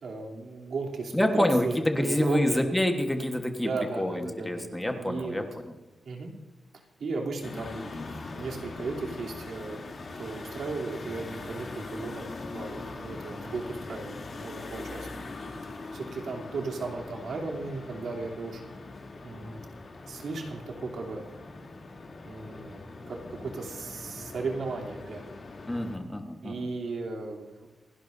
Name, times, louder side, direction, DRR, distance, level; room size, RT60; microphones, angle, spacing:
voice 1, 0.0-2.6 3.6-5.5 6.0-6.3 7.0-9.8 10.2-12.2 12.5-15.1 15.6-18.6 19.2-19.6 20.1-21.2 22.2-25.3 26.4-27.7, right 3 dB, 70° right, 0 dB, 2.9 m, -35 dB
voice 2, 1.1-3.7 4.0-5.7 25.7-26.7, left 1 dB, 10° left, 4 dB, 1.3 m, -27 dB
sound 1, 7.4-26.0, left 3 dB, 45° left, 2.8 m, -41 dB
28.0 x 11.5 x 2.6 m, 1.1 s
wide cardioid pair, 145°, 0 cm